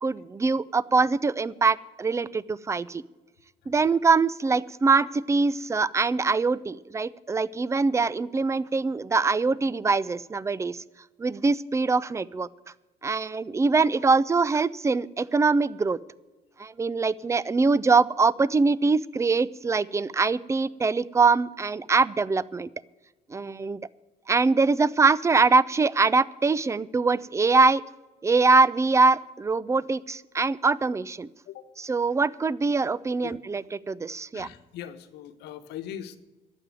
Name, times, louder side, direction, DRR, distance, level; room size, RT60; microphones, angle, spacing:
voice 1, 0.0-3.0 3.7-10.8 11.2-12.5 13.0-16.0 16.6-22.7 23.3-23.8 24.3-27.8 28.2-31.3 31.8-34.5, right 4 dB, 15° right, 21 dB, 0.4 m, -23 dB
voice 2, 34.3-36.2, left 10 dB, 80° left, 10 dB, 1.2 m, -40 dB
11.5 x 7.6 x 9.2 m, 1.1 s
cardioid pair, 110°, 17 cm